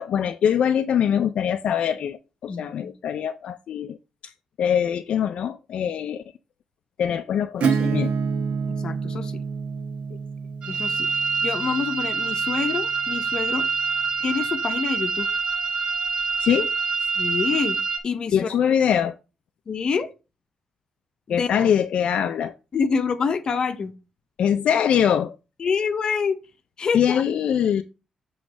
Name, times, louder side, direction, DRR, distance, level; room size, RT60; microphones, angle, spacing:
voice 1, 0.0-4.0 4.2-4.3 4.6-6.2 7.0-8.1 16.4-16.7 18.3-19.2 21.3-22.6 24.4-25.4 26.9-27.8, left 8 dB, 65° left, 0.4 m, -23 dB
voice 2, 2.5-2.9 8.8-9.4 10.7-11.1 11.4-13.7 14.2-15.3 17.2-18.5 19.7-20.1 21.3-21.5 22.7-23.9 25.6-26.4 26.8-27.2, left 5 dB, 40° left, 0.8 m, -26 dB
Acoustic guitar / Strum, 7.6-13.1, right 5 dB, 80° right, 1.0 m, -28 dB
sound 1, 10.6-18.0, right 5 dB, 50° right, 1.3 m, -26 dB
7.8 x 3.1 x 6.1 m
wide cardioid pair, 160°, 2 cm